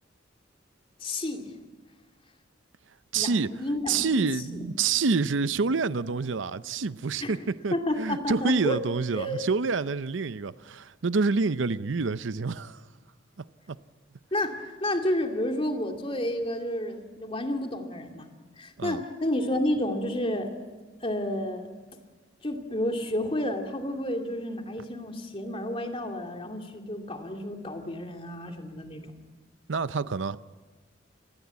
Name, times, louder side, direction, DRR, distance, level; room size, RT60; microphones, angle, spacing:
voice 1, 1.0-1.5 3.1-4.7 7.2-7.4 7.7-8.8 9.2-9.4 14.3-18.3 18.6-20.5 21.0-21.7 22.4-29.2, left 1 dB, 30° left, 2.5 m, -31 dB
voice 2, 3.1-3.5 3.9-12.8 13.7-13.8 18.8-19.0 29.7-30.4, right 4 dB, 80° right, 0.7 m, -27 dB
28.0 x 20.0 x 8.3 m
head